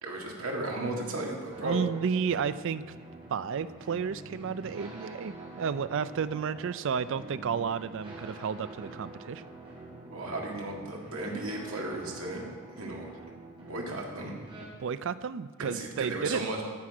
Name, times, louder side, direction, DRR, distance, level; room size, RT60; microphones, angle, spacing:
voice 1, 0.0-1.9 10.0-12.5 12.8-13.1 13.7-14.3 15.6-16.6, right 2 dB, 80° right, -1 dB, 2.0 m, -35 dB
sound 1, 1.5-14.7, right 2 dB, 25° right, 3.0 m, -46 dB
voice 2, 1.6-2.8 3.3-9.4 14.8-16.4, right 6 dB, 60° right, 15 dB, 0.4 m, -32 dB
14.5 x 6.1 x 4.9 m, 1.4 s
head